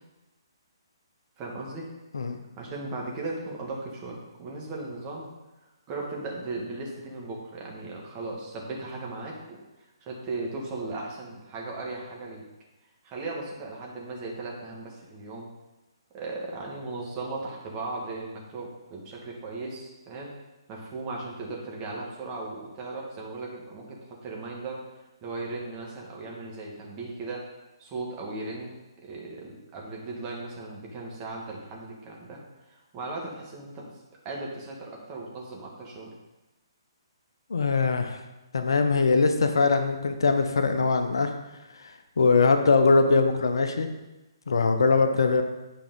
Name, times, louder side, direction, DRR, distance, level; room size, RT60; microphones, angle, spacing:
voice 1, 1.4-1.8 2.6-5.3 5.9-9.6 10.0-12.4 13.0-15.5 16.1-20.3 20.7-24.8 25.2-27.4 27.8-28.7 29.0-32.4 32.7-33.9 34.2-36.1, right 3 dB, 25° right, -2 dB, 1.6 m, -37 dB
voice 2, 37.5-38.2 38.5-41.3 42.2-43.9 44.5-45.4, left 4 dB, 65° left, 7 dB, 0.7 m, -22 dB
8.8 x 4.7 x 3.8 m, 1.0 s
figure-of-eight pair, 130°, 3 cm